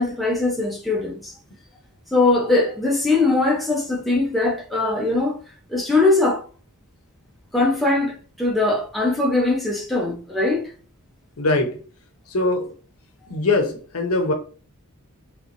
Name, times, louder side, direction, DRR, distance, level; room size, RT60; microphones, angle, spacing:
voice 1, 0.0-1.3 2.1-5.4 5.7-6.4 7.5-10.7, left 2 dB, ahead, 0.7 m, -21 dB
voice 2, 11.4-11.8 12.3-12.7 13.3-14.3, left 2 dB, 75° left, 0.8 m, -22 dB
3.2 x 3.1 x 2.6 m
head